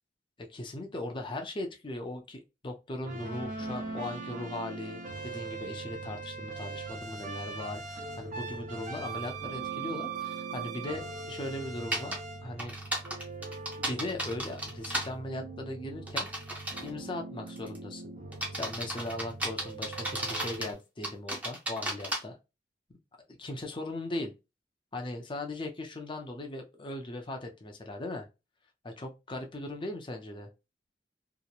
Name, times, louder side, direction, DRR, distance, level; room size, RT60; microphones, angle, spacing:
voice 1, 0.4-12.7 13.9-16.3 16.8-18.1 18.5-22.4 23.4-24.3 24.9-28.3 28.8-30.5, left 2 dB, 30° left, 0.5 m, -38 dB
sound 1, 3.0-20.7, right 4 dB, 45° right, 0.6 m, -41 dB
sound 2, 11.9-12.2 12.6-15.1 16.1-16.9 17.5-17.8 18.3-20.7 21.0-22.2, right 1 dB, 10° right, 0.7 m, -34 dB
2.9 x 2.1 x 2.3 m
head